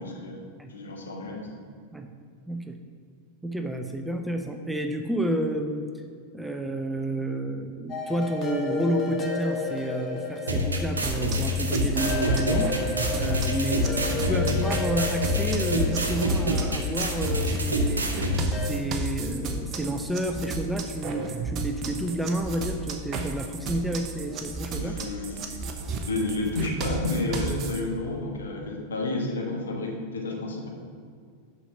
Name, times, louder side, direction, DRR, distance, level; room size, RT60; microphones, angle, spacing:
voice 1, 0.0-0.4 0.7-1.5 14.3-14.4 24.8-25.6 26.1-30.7, left 2 dB, 70° left, 0 dB, 1.5 m, -31 dB
voice 2, 2.5-2.8 3.4-5.9 6.3-12.7 13.2-18.1 18.7-24.9, right 1 dB, 5° right, 5 dB, 0.6 m, -30 dB
sound 1, 7.9-18.7, left 3 dB, 25° left, 1.5 m, -34 dB
sound 2, 10.5-18.5, left 1 dB, 75° right, 1.0 m, -26 dB
sound 3, 11.0-27.8, right 4 dB, 35° right, 0.9 m, -33 dB
7.0 x 5.7 x 6.1 m, 2.2 s
figure-of-eight pair, 90°, 0 cm